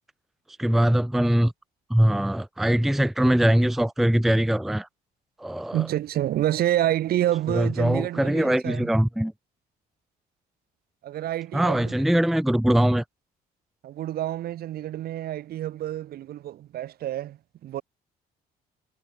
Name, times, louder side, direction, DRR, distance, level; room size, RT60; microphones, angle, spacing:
voice 1, 0.6-1.5 1.9-4.9 5.4-5.9 7.5-9.3 11.5-13.0, right 1 dB, ahead, 0.5 m, -22 dB
voice 2, 5.7-8.9 11.0-11.9 13.8-17.8, right 13 dB, 65° right, 2.7 m, -28 dB
cardioid pair, 110°, 17 cm